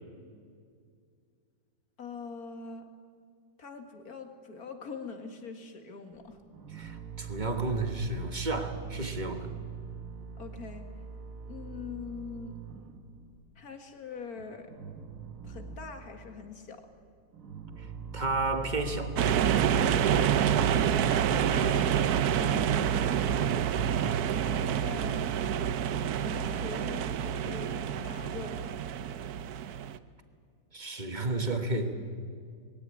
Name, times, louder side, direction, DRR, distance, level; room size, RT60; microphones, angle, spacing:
voice 1, 2.0-2.9 3.6-6.4 10.4-10.9 11.5-12.6 13.6-14.7 15.4-16.8 20.5-23.4 24.4-25.3 26.2-28.7, left 5 dB, 50° left, 6 dB, 2.3 m, -43 dB
sound 1, 6.1-13.6 13.8-14.0 14.4-16.3 16.7-25.2, right 5 dB, 45° right, 1.6 m, -43 dB
voice 2, 6.7-9.5 17.8-19.2 30.7-31.9, right 2 dB, 25° right, 6 dB, 1.4 m, -32 dB
sound 2, 19.2-30.0, right 8 dB, 65° right, 1.1 m, -27 dB
21.0 x 17.0 x 9.8 m, 2.2 s
omnidirectional pair, 2.1 m